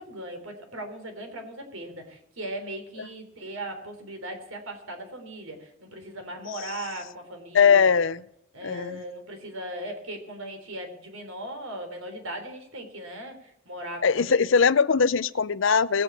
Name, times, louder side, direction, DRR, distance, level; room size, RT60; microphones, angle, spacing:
voice 1, 0.0-7.9 8.5-14.4, right 1 dB, 80° right, 5 dB, 3.6 m, -38 dB
voice 2, 7.5-8.2 8.6-9.0 14.0-16.0, left 6 dB, 65° left, 17 dB, 0.5 m, -21 dB
19.5 x 7.9 x 8.1 m, 0.72 s
head